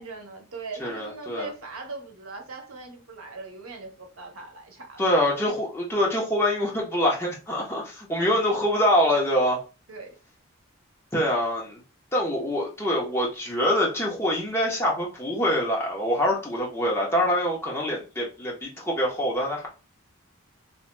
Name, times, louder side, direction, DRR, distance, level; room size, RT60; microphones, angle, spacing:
voice 1, 0.0-5.1 9.9-10.2, right 3 dB, 85° right, 0.8 m, -40 dB
voice 2, 0.8-1.5 5.0-9.6 11.1-11.8 12.1-19.7, left 1 dB, 10° left, 0.8 m, -25 dB
3.1 x 2.9 x 2.2 m
head